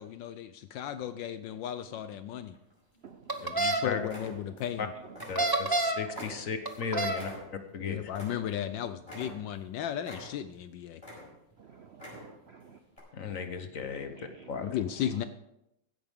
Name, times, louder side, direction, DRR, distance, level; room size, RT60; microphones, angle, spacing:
voice 1, 0.0-2.6 3.5-4.9 7.8-11.0 14.6-15.2, left 10 dB, 75° left, 11 dB, 1.3 m, -35 dB
sound 1, 2.5-3.2 3.6-3.7 4.0-4.8 5.1-5.8 6.1-8.7 9.0-9.7 10.0-10.6 10.9-11.5 11.9-12.5 12.9-13.0, left 1 dB, 15° left, 5.5 m, -46 dB
sound 2, 3.3-3.8 5.2-6.1 6.7-7.2, right 2 dB, 20° right, 0.7 m, -28 dB
voice 2, 3.4-4.0 4.8-4.9 5.3-7.3 7.7-8.0 13.1-14.1 14.5-14.7, left 6 dB, 50° left, 8 dB, 1.1 m, -36 dB
voice 3, 6.9-7.3 11.6-12.8 13.9-14.5, right 5 dB, 75° right, 6 dB, 0.6 m, -47 dB
16.0 x 10.5 x 3.6 m, 0.84 s
omnidirectional pair, 2.1 m